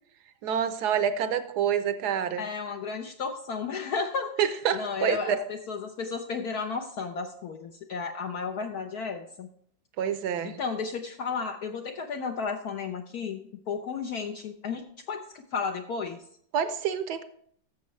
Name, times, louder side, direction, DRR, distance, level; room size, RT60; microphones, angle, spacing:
voice 1, 0.4-2.4 4.4-5.4 10.0-10.6 16.5-17.2, right 8 dB, 65° right, 11 dB, 1.1 m, -27 dB
voice 2, 2.4-9.5 10.4-16.2, left 5 dB, 65° left, 4 dB, 1.0 m, -33 dB
13.5 x 6.8 x 3.2 m, 0.64 s
omnidirectional pair, 2.1 m